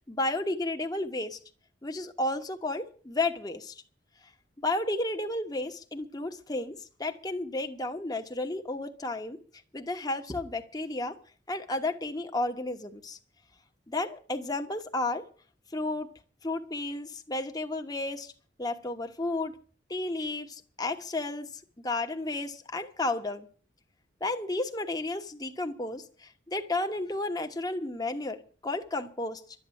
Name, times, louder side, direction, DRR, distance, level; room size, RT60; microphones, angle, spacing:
voice 1, 0.1-1.4 1.8-3.8 4.6-9.4 9.7-11.2 11.5-13.2 13.9-15.2 15.7-16.1 16.4-18.3 18.6-19.5 19.9-23.5 24.2-29.4, left 2 dB, 20° left, 5 dB, 1.1 m, -32 dB
12.0 x 8.7 x 9.9 m, 0.42 s
head